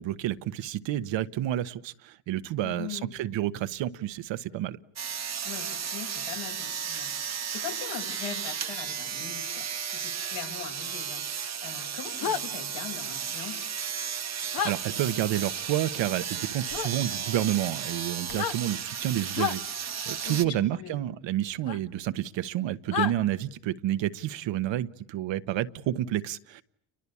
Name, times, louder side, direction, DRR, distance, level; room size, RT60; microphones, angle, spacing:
voice 1, 0.0-4.8 14.6-26.6, right 13 dB, 75° right, 1.3 m, -30 dB
voice 2, 2.6-3.1 5.4-13.7 20.2-21.0, left 8 dB, 75° left, 6.6 m, -41 dB
sound 1, 5.0-20.4, right 7 dB, 35° right, 1.2 m, -34 dB
sound 2, 12.2-12.4 14.5-14.7 16.7-16.9 18.2-18.6 19.3-19.6 21.7-21.8 22.9-23.1, left 8 dB, 50° left, 1.6 m, -29 dB
29.5 x 23.5 x 8.5 m
cardioid pair, 115°, 45 cm